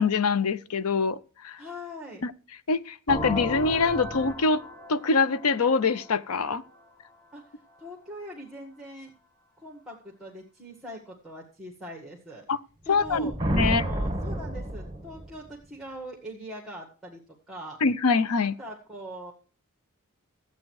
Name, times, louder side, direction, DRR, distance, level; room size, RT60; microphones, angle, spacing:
voice 1, 0.0-1.6 2.2-2.3 2.7-4.6 4.9-6.6 12.5-12.6 12.9-13.8 17.8-18.6, left 4 dB, 80° left, 0.6 m, -24 dB
voice 2, 1.6-2.2 7.3-7.4 7.8-9.1 9.6-12.4 12.8-13.3 13.6-17.8 18.6-19.3, equal, ahead, 1.7 m, -42 dB
sound 1, 3.1-6.8, left 1 dB, 15° left, 1.5 m, -36 dB
sound 2, 13.0-15.5, right 1 dB, 20° right, 2.3 m, -29 dB
14.0 x 8.5 x 4.7 m
head